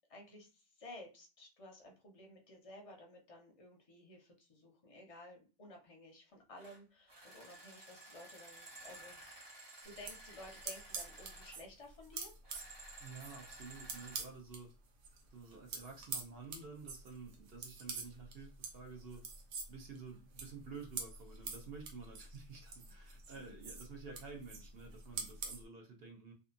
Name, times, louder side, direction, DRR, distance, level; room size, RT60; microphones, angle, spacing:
voice 1, 0.1-9.2 9.8-12.3, left 1 dB, 35° left, 1 dB, 0.6 m, -54 dB
sound 1, 6.6-6.8 7.1-11.6 12.4-14.3, right 2 dB, 30° right, 0.5 m, -54 dB
sound 2, 9.8-14.6 15.0-25.6, right 4 dB, 85° right, 1.0 m, -46 dB
voice 2, 13.0-14.7 15.3-19.2 19.7-26.3, right 4 dB, 60° right, 2 dB, 0.8 m, -51 dB
2.7 x 2.4 x 2.5 m, 0.33 s
omnidirectional pair, 1.3 m